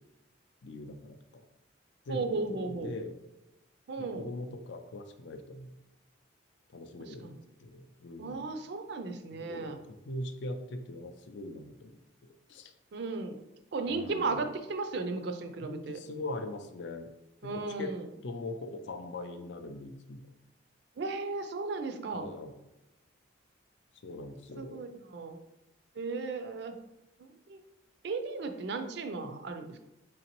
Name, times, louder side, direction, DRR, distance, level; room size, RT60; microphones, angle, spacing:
voice 1, 0.6-1.4 2.1-3.2 4.0-5.7 6.7-7.3 7.6-8.5 9.4-12.0 12.5-12.7 13.9-14.4 15.6-17.1 17.4-17.9 18.2-20.2 22.1-22.5 24.0-24.8, left 2 dB, 60° left, 7 dB, 0.4 m, -41 dB
voice 2, 2.1-2.9 3.9-4.2 7.0-7.4 8.2-9.8 12.9-13.4 13.7-16.0 17.4-18.0 21.0-22.3 24.6-25.4 26.0-26.8 27.2-27.6 28.0-29.8, right 3 dB, 55° right, 7 dB, 0.4 m, -35 dB
3.9 x 3.1 x 3.0 m, 0.93 s
head